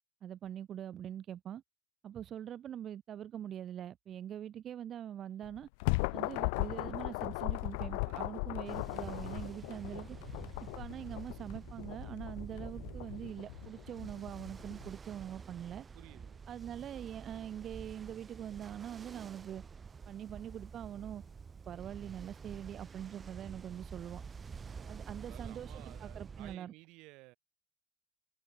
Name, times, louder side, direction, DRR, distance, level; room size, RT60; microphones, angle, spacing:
voice 1, 0.2-1.6 2.0-5.7 6.1-10.2 10.8-15.9 16.5-19.6 20.1-21.2 21.7-24.2 24.9-26.7, right 10 dB, 40° right, 1.3 m, -43 dB
sound 1, 5.4-14.9, left 32 dB, 90° left, 1.1 m, -38 dB
Ocean, 8.6-26.6, right 5 dB, 25° right, 3.4 m, -48 dB
voice 2, 15.9-16.5 24.7-27.3, right 23 dB, 70° right, 6.2 m, -56 dB
cardioid pair, 135°, 0 cm